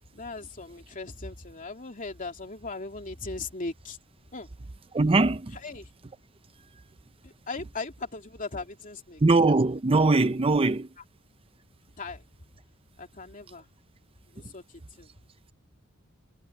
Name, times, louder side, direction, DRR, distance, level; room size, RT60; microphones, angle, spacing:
voice 1, 0.1-4.0 4.3-4.5 5.6-5.9 7.2-9.2 12.0-12.2 13.0-13.7 14.3-15.1, left 3 dB, 40° left, 2.8 m, -38 dB
voice 2, 4.9-5.6 9.2-10.9 14.4-14.5, right 3 dB, 25° right, 0.6 m, -21 dB
head